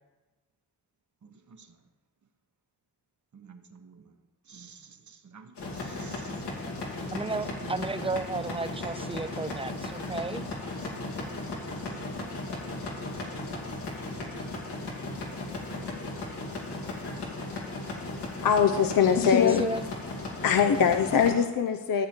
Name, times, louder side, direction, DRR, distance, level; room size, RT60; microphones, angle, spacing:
voice 1, 3.3-4.0 4.5-6.3 10.9-12.0 15.7-16.3, right 6 dB, 45° right, 7 dB, 1.1 m, -51 dB
sound 1, 5.6-21.3, left 2 dB, 80° left, 2.5 m, -36 dB
voice 2, 7.1-10.4 19.6-19.9, right 3 dB, 15° right, 13 dB, 0.6 m, -33 dB
voice 3, 18.4-19.8 20.4-22.1, left 7 dB, 55° left, 6 dB, 0.8 m, -22 dB
13.5 x 7.2 x 4.5 m, 1.2 s
supercardioid pair, 45°, 40 cm